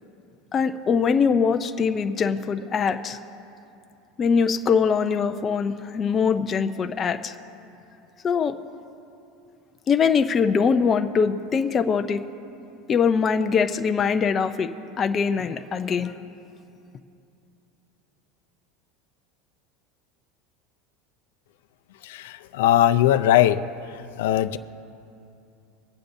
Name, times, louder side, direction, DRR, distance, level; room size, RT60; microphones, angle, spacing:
voice 1, 0.5-3.2 4.2-7.3 8.2-8.5 9.9-12.2 12.9-14.7 15.0-16.1, left 6 dB, 20° left, 7 dB, 0.4 m, -22 dB
voice 2, 22.0-23.6 24.2-24.6, left 12 dB, 85° left, 9 dB, 0.4 m, -20 dB
24.0 x 8.4 x 2.6 m, 2.7 s
supercardioid pair, 165°, 0 cm